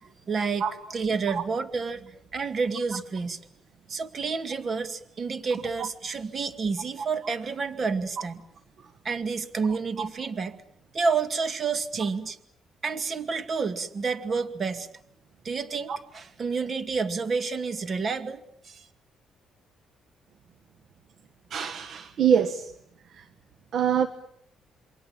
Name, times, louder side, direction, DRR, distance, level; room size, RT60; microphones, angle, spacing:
voice 1, 0.0-0.6 0.9-3.4 3.9-8.4 9.0-10.6 10.9-12.4 12.8-14.9 15.4-18.9, right 5 dB, 40° right, 10 dB, 2.3 m, -29 dB
voice 2, 21.5-22.7 23.1-23.2 23.7-24.1, right 8 dB, 60° right, 11 dB, 1.3 m, -24 dB
28.0 x 23.5 x 7.5 m, 0.72 s
cardioid pair, 100°, 0 cm